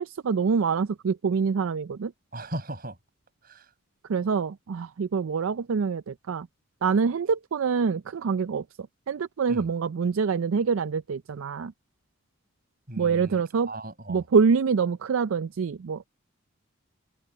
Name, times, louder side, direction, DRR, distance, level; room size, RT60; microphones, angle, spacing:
voice 1, 0.0-2.1 4.1-6.5 6.8-8.6 9.1-11.7 13.0-13.7 14.1-16.1, right 5 dB, 75° right, 0.4 m, -25 dB
voice 2, 2.3-3.0 3.4-3.7 9.5-9.7 12.9-14.3, right 1 dB, 45° right, 7.3 m, -38 dB
head